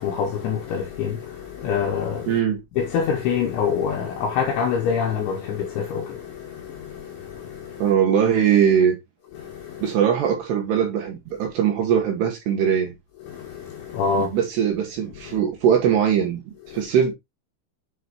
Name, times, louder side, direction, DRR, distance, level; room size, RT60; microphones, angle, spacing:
voice 1, 0.0-2.4 2.8-7.9 9.4-9.9 13.3-14.4 15.3-15.4 16.7-16.8, left 6 dB, 75° left, 3.0 m, -26 dB
voice 2, 2.3-2.6 7.8-9.0 9.8-12.9 14.1-16.4 16.7-17.1, right 8 dB, 70° right, 2.8 m, -21 dB
8.2 x 5.9 x 2.9 m
omnidirectional pair, 6.0 m